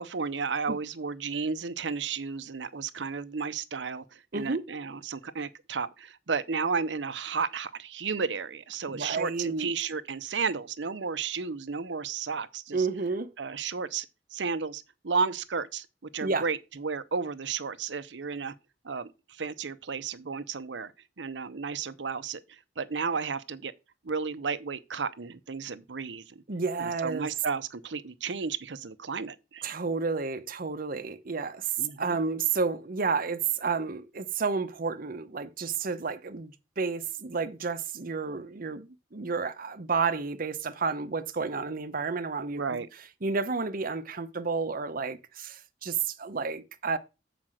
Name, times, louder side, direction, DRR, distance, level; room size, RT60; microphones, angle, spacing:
voice 1, 0.0-12.9 13.4-14.1 14.3-18.5 18.8-20.9 21.2-23.7 24.0-26.4 26.8-29.7 31.8-32.2 42.6-42.9, right 5 dB, 85° right, 0.7 m, -33 dB
voice 2, 8.9-9.7 12.7-13.3 16.2-16.4 26.5-27.3 29.6-31.7 32.0-42.8 43.2-47.0, right 4 dB, 50° right, 0.8 m, -31 dB
7.5 x 5.1 x 6.3 m
head